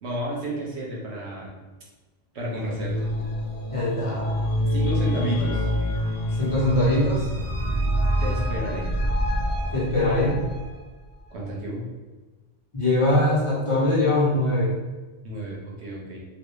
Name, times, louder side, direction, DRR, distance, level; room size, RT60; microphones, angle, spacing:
voice 1, 0.0-1.6 2.3-3.0 4.6-5.7 8.2-8.9 11.3-11.8 15.2-16.2, equal, 85° right, -3 dB, 1.1 m, -32 dB
sound 1, 2.4-10.7, equal, 55° left, 0.4 m, -26 dB
voice 2, 3.7-4.4 6.4-7.3 9.7-10.4 12.7-14.7, left 1 dB, 35° left, -7 dB, 0.8 m, -22 dB
3.1 x 2.6 x 3.0 m, 1.2 s
omnidirectional pair, 1.1 m